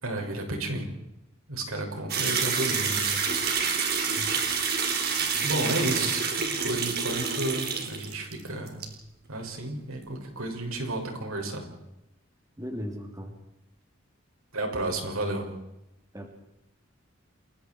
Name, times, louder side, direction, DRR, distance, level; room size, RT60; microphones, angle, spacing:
voice 1, 0.0-0.9 1.5-3.2 5.4-6.2 6.6-8.8 9.3-11.7 14.5-15.5, right 2 dB, 85° right, 2 dB, 6.6 m, -32 dB
sound 1, 2.1-8.4 8.7-8.9, right 5 dB, 45° right, 4.0 m, -28 dB
voice 2, 5.3-6.1 6.4-6.6 12.6-13.3 16.1-16.3, equal, 15° right, 3 dB, 3.3 m, -38 dB
29.5 x 22.0 x 4.7 m, 0.86 s
head